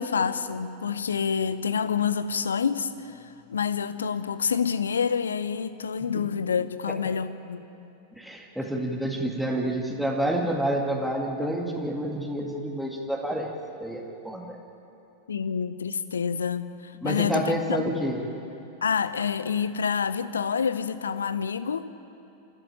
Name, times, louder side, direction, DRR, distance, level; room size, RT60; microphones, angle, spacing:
voice 1, 0.0-7.7 15.3-17.9 18.8-21.9, left 6 dB, 70° left, 14 dB, 0.8 m, -28 dB
voice 2, 8.2-13.5 13.8-14.6 17.0-18.2, right 1 dB, ahead, -1 dB, 2.1 m, -28 dB
27.5 x 13.0 x 9.3 m, 2.9 s
figure-of-eight pair, 90°, 0 cm